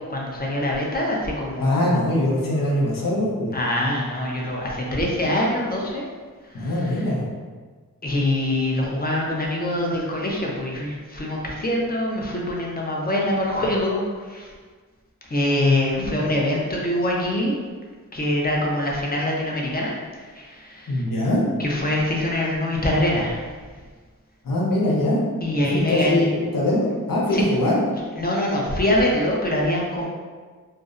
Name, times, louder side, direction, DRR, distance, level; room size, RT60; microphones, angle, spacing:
voice 1, 0.1-1.9 3.5-6.1 6.6-6.7 8.0-14.0 14.3-14.5 15.3-17.5 18.1-19.9 20.4-21.0 21.6-23.4 25.4-26.3 27.3-27.4 28.2-30.1, left 1 dB, 25° left, -2 dB, 0.6 m, -24 dB
voice 2, 1.6-3.5 6.5-7.2 15.7-16.2 20.9-21.4 24.4-25.2 25.9-27.8, left 1 dB, 70° left, -4 dB, 0.7 m, -22 dB
2.5 x 2.0 x 2.4 m, 1.5 s
cardioid pair, 40°, 34 cm